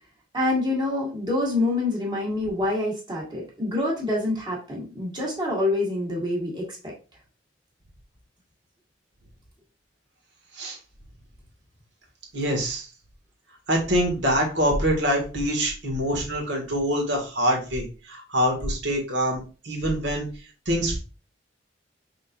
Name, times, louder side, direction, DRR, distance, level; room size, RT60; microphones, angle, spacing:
voice 1, 0.3-6.9, left 2 dB, 25° right, -4 dB, 1.7 m, -26 dB
voice 2, 12.3-12.9 13.7-20.3 20.6-21.0, equal, 75° right, 0 dB, 1.6 m, -25 dB
5.3 x 3.7 x 2.4 m, 0.34 s
head